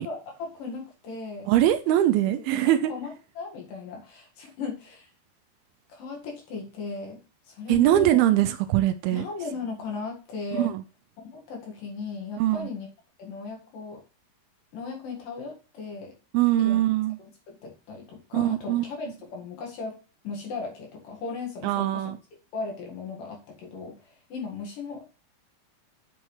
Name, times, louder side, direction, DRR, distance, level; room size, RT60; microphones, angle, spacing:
voice 1, 0.0-1.5 1.9-2.0 2.2-5.1 5.9-7.2 7.5-8.2 9.1-10.7 11.2-12.9 13.2-14.0 14.7-16.1 16.6-16.8 17.2-20.0 20.2-22.0 22.5-25.1, left 4 dB, 65° left, 3.2 m, -37 dB
voice 2, 1.5-2.9 7.7-9.3 10.5-10.8 12.4-12.7 16.3-17.2 18.3-18.9 21.6-22.2, right 13 dB, 80° right, 2.3 m, -22 dB
7.9 x 5.6 x 3.2 m
omnidirectional pair, 4.5 m